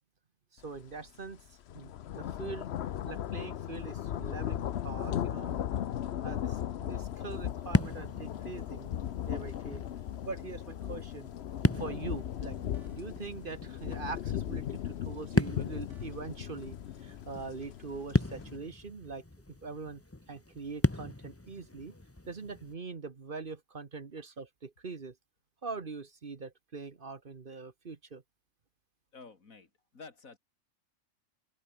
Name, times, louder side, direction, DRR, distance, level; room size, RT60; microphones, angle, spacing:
voice 1, 0.5-2.7 3.1-5.7 6.2-8.9 9.2-9.8 10.2-11.3 11.7-12.6 12.9-20.0 20.3-21.9 22.3-25.2 25.6-28.2, right 4 dB, 40° right, 1.4 m, -43 dB
sound 1, 0.8-0.9 1.3-18.6, left 10 dB, 60° left, 0.9 m, -37 dB
sound 2, 7.0-22.7, left 2 dB, 10° left, 1.1 m, -36 dB
sound 3, 12.5-13.4 15.4-16.6, right 3 dB, 60° right, 3.1 m, -62 dB
voice 2, 29.1-30.4, left 4 dB, 80° left, 3.0 m, -51 dB
open air
omnidirectional pair, 1.4 m